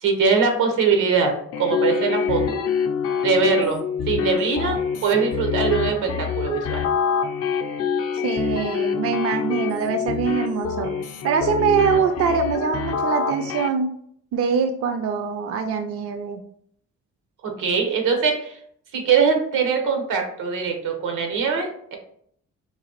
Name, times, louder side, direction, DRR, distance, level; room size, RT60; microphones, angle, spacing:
voice 1, 0.0-2.6 3.2-6.8 17.4-18.6 18.9-22.0, right 5 dB, 85° right, 3 dB, 1.0 m, -22 dB
sound 1, 1.5-13.7, left 7 dB, 55° left, 0.5 m, -26 dB
voice 2, 8.2-10.9 11.2-13.9 14.3-16.4, right 6 dB, 50° right, 7 dB, 0.4 m, -23 dB
3.9 x 2.5 x 2.8 m, 0.65 s
cardioid pair, 90°, 30 cm